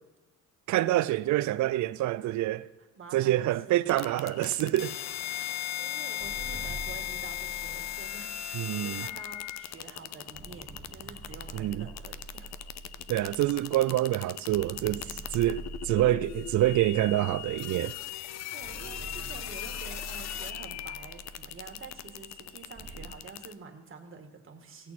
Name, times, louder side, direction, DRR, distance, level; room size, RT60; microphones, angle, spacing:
voice 1, 0.7-2.7 3.1-5.0 8.5-9.0 11.5-11.9 13.1-15.0 15.3-18.0, right 14 dB, 70° right, 0.5 m, -26 dB
voice 2, 2.8-3.9 5.4-12.5 15.0-15.5 18.3-24.9, right 5 dB, 45° right, 1.7 m, -48 dB
sound 1, 3.9-23.5, left 12 dB, 60° left, 0.6 m, -38 dB
sound 2, 6.2-9.8 10.3-14.1 14.5-18.1 18.6-23.1, right 3 dB, 25° right, 1.3 m, -45 dB
17.0 x 6.5 x 4.2 m
cardioid pair, 90°, 30 cm